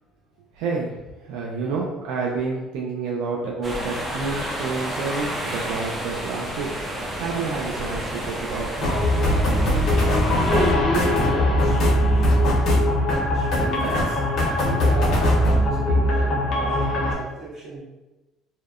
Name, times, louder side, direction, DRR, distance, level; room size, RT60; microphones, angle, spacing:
voice 1, 0.5-6.7 7.2-8.9, right 4 dB, 90° right, -2 dB, 0.3 m, -29 dB
voice 2, 1.6-1.9 10.5-12.3 13.3-17.8, right 3 dB, 45° right, -8 dB, 1.3 m, -32 dB
sound 1, 3.6-10.7, right 1 dB, 15° right, 0.5 m, -30 dB
sound 2, 8.8-17.1, left 1 dB, 50° left, 0.7 m, -20 dB
2.7 x 2.0 x 2.4 m, 1.1 s
cardioid pair, 125°, 0 cm